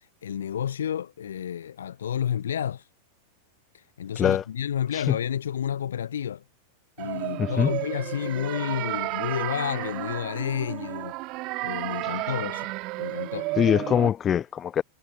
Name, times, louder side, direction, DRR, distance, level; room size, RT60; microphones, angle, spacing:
voice 1, 0.2-2.8 4.0-6.4 7.0-11.1 11.6-12.7 13.0-13.5, left 9 dB, 65° left, 0.9 m, -30 dB
sound 1, 7.0-14.1, right 23 dB, 40° right, 3.4 m, -32 dB
voice 2, 7.4-7.7 13.6-14.8, left 9 dB, 25° left, 1.0 m, -23 dB
figure-of-eight pair, 90°, 0 cm